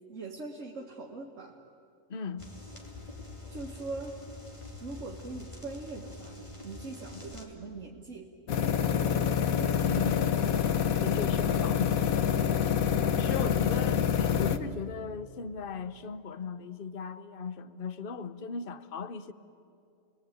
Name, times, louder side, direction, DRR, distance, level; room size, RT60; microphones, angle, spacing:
voice 1, 0.1-1.6 3.5-4.2 4.8-8.3 13.1-13.5, right 3 dB, 60° right, 2.0 m, -42 dB
voice 2, 2.1-2.5 7.1-7.2 9.9-10.3 11.0-12.3 13.2-19.3, left 5 dB, 45° left, 1.0 m, -37 dB
sound 1, 2.4-7.5, left 2 dB, 20° left, 2.9 m, -45 dB
sound 2, 8.5-14.6, left 8 dB, 85° left, 1.4 m, -27 dB
30.0 x 21.5 x 9.2 m
omnidirectional pair, 1.4 m